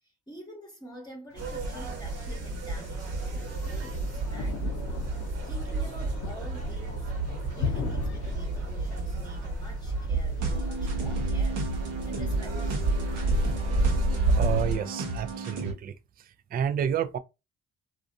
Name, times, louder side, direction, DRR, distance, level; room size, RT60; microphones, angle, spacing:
voice 1, 0.3-4.8 5.4-7.2 7.6-13.0, equal, 15° left, 1.0 m, -47 dB
Thunder, 1.3-13.3, left 8 dB, 70° left, 0.6 m, -41 dB
sound 1, 1.4-14.8, right 2 dB, 55° right, 1.1 m, -30 dB
sound 2, 10.4-15.7, right 2 dB, 80° right, 0.9 m, -35 dB
voice 2, 14.4-15.9 16.5-17.2, right 8 dB, 30° right, 0.4 m, -29 dB
2.5 x 2.3 x 2.6 m
supercardioid pair, 60°, 30 cm